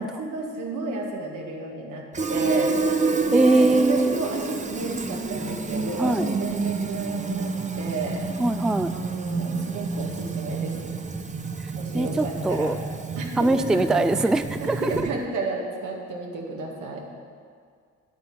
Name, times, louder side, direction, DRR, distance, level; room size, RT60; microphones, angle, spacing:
voice 1, 0.0-2.7 3.3-8.3 8.9-10.9 11.7-12.7 13.2-14.3 14.6-17.0, right 3 dB, 85° right, -1 dB, 2.1 m, -32 dB
Fill (with liquid), 2.1-15.3, right 4 dB, 25° right, 0.8 m, -29 dB
voice 2, 3.3-4.2 5.0-5.2 6.0-6.3 8.4-8.9 11.9-12.8 13.4-15.1, right 2 dB, ahead, 11 dB, 0.3 m, -22 dB
10.5 x 8.5 x 6.2 m, 2.1 s
cardioid pair, 90°, 30 cm